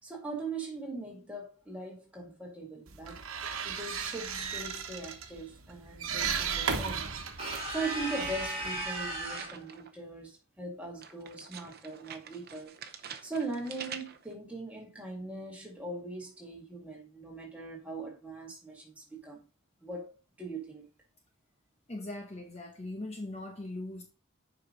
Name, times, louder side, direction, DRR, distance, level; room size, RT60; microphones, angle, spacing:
voice 1, 0.0-3.2 3.6-7.1 7.4-12.8 13.0-19.4 19.8-20.8, right 2 dB, 5° right, 2.0 m, -40 dB
sound 1, 2.9-9.4, right 6 dB, 80° right, 1.2 m, -36 dB
sound 2, 7.4-9.6, right 1 dB, 30° right, 2.6 m, -36 dB
sound 3, 9.0-10.0 11.0-14.3, right 7 dB, 45° right, 0.7 m, -46 dB
voice 2, 21.9-24.1, left 2 dB, 30° left, 0.9 m, -40 dB
7.5 x 5.3 x 3.9 m
head